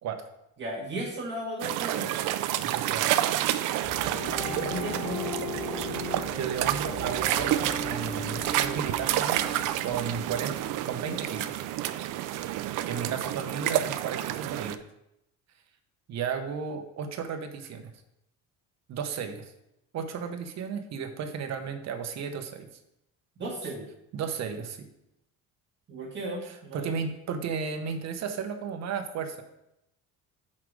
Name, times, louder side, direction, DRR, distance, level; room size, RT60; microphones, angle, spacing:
voice 1, 0.6-2.2 4.0-5.3 23.4-23.9 25.9-26.9, right 1 dB, 35° right, -4 dB, 1.7 m, -36 dB
sound 1, 1.6-14.8, right 13 dB, 65° right, 0.5 m, -29 dB
voice 2, 2.6-3.2 6.3-9.5 9.8-10.5 10.8-11.5 12.8-14.8 16.1-17.9 18.9-19.5 19.9-22.7 24.1-24.8 26.4-29.4, right 6 dB, 50° right, 6 dB, 1.0 m, -34 dB
sound 2, 3.8-10.8, left 5 dB, 30° left, 0.8 m, -47 dB
sound 3, 4.1-9.8, left 4 dB, 45° left, 1.4 m, -38 dB
5.8 x 4.8 x 6.3 m, 0.84 s
cardioid pair, 130°, 34 cm